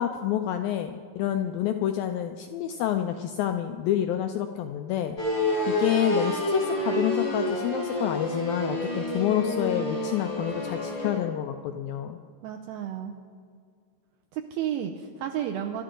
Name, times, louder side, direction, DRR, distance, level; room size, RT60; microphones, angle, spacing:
voice 1, 0.0-5.2 5.7-12.2, left 11 dB, 90° left, 7 dB, 2.0 m, -28 dB
sound 1, 5.2-11.2, left 1 dB, 40° left, 0.9 m, -28 dB
voice 2, 12.4-13.2 14.3-15.8, right 10 dB, 75° right, 3 dB, 2.3 m, -32 dB
24.5 x 12.5 x 3.8 m, 2.2 s
omnidirectional pair, 4.9 m